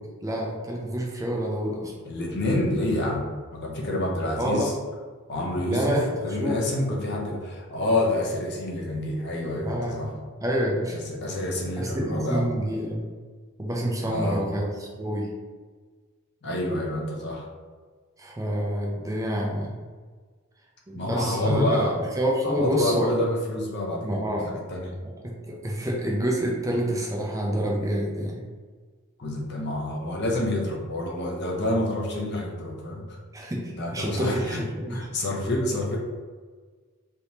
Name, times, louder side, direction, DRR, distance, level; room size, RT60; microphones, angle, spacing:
voice 1, 0.2-1.9 4.4-4.7 5.7-6.6 7.3-7.4 9.6-10.1 10.4-11.0 11.8-13.1 13.6-15.3 18.2-19.8 20.9-23.1 24.0-24.6 25.2-28.4 33.3-35.1, equal, 15° right, -2 dB, 0.4 m, -28 dB
voice 2, 2.0-3.2 3.5-4.7 5.3-6.0 6.2-10.1 10.9-12.5 14.1-14.4 16.4-17.5 20.9-22.0 22.4-24.9 29.2-33.2 33.7-34.6 34.9-36.0, left 1 dB, 50° left, -1 dB, 0.7 m, -28 dB
3.4 x 2.8 x 2.7 m, 1.5 s
head